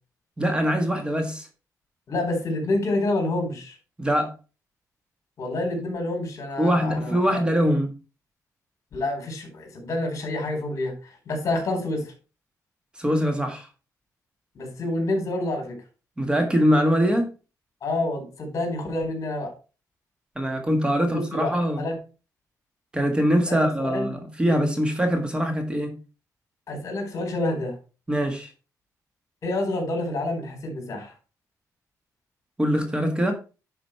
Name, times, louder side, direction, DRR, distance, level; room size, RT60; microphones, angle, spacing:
voice 1, 0.4-1.5 4.0-4.3 6.6-7.9 13.0-13.7 16.2-17.3 20.3-21.8 22.9-25.9 28.1-28.5 32.6-33.3, equal, 15° right, 5 dB, 1.6 m, -23 dB
voice 2, 2.1-3.8 5.4-7.4 8.9-12.1 14.5-15.8 17.8-19.5 21.1-22.0 23.5-24.1 26.7-27.8 29.4-31.1, left 2 dB, 50° left, 3 dB, 4.2 m, -28 dB
10.0 x 5.1 x 4.5 m, 0.33 s
cardioid pair, 120°, 6 cm